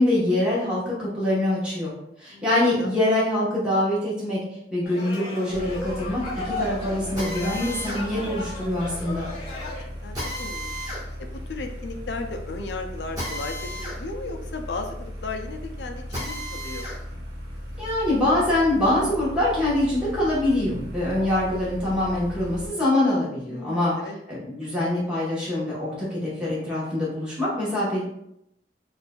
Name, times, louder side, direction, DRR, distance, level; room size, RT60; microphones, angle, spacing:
voice 1, 0.0-1.9 2.2-4.4 4.7-9.3 17.8-23.9 24.3-28.0, left 1 dB, 5° right, -8 dB, 1.1 m, -24 dB
sound 1, 4.8-9.8, left 2 dB, 35° left, 1.1 m, -35 dB
sound 2, 5.5-22.7, equal, 80° right, 0.9 m, -37 dB
Drill, 7.2-17.0 17.4-19.0, equal, 20° right, 1.3 m, -37 dB
voice 2, 10.0-10.8 11.2-16.9 23.5-24.2, left 3 dB, 70° left, 4 dB, 0.5 m, -35 dB
4.1 x 2.5 x 2.3 m, 0.79 s
head